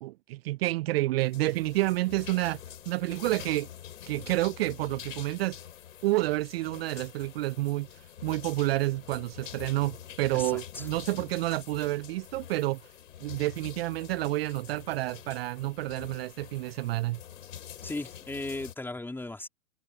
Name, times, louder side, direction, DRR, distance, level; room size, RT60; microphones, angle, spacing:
voice 1, 0.0-2.6 2.9-3.7 4.1-5.6 6.0-12.8 13.2-17.2, right 18 dB, 45° right, 0.6 m, -29 dB
sound 1, 1.2-18.7, left 10 dB, 70° left, 5.5 m, -46 dB
voice 2, 10.3-10.9 11.2-11.3 17.8-19.5, left 2 dB, 5° left, 3.7 m, -37 dB
hypercardioid pair, 115°, 41 cm